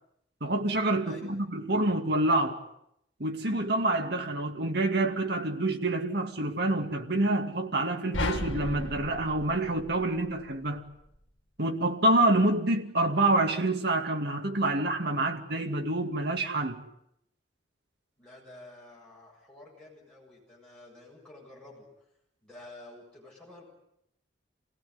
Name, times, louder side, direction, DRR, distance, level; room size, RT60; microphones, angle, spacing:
voice 1, 0.4-2.6 3.2-10.8 11.6-16.8, right 2 dB, 60° right, 2.4 m, -27 dB
sound 1, 8.1-10.5, left 2 dB, 90° left, 2.3 m, -35 dB
voice 2, 18.2-21.9 22.4-23.6, left 2 dB, 5° left, 7.6 m, -50 dB
28.0 x 17.5 x 9.7 m
head